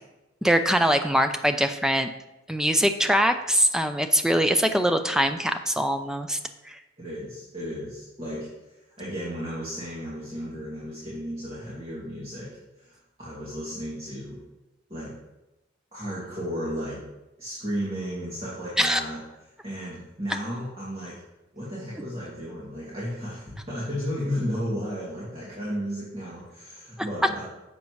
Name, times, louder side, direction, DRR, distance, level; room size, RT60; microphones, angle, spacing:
voice 1, 0.4-2.1 2.5-6.4 6.6-6.8 18.8-19.0, equal, 5° right, 7 dB, 0.5 m, -22 dB
voice 2, 7.0-12.5 12.8-14.4 14.9-15.1 15.9-17.0 17.4-19.2 19.6-21.2 21.5-27.4, equal, 30° right, -8 dB, 2.4 m, -34 dB
10.5 x 7.4 x 3.1 m, 0.98 s
head